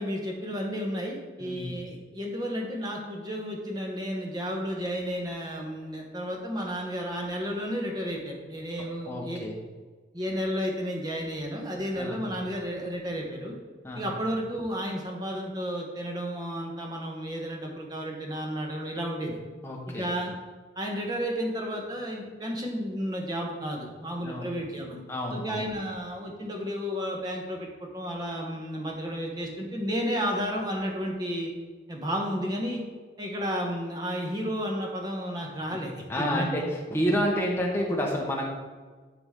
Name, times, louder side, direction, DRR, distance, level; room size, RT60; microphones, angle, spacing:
voice 1, 0.0-9.5 10.1-13.5 13.9-19.4 19.9-20.3 20.8-27.7 27.9-31.5 31.9-32.8 33.2-36.5, equal, 20° right, 0 dB, 1.1 m, -32 dB
voice 2, 1.4-1.8 9.1-9.6 11.9-12.2 13.8-14.1 19.6-20.1 24.2-24.5 25.1-25.7 35.7-35.8 36.1-36.6 36.9-38.5, equal, 15° left, -1 dB, 1.1 m, -29 dB
10.5 x 4.0 x 3.7 m, 1.4 s
head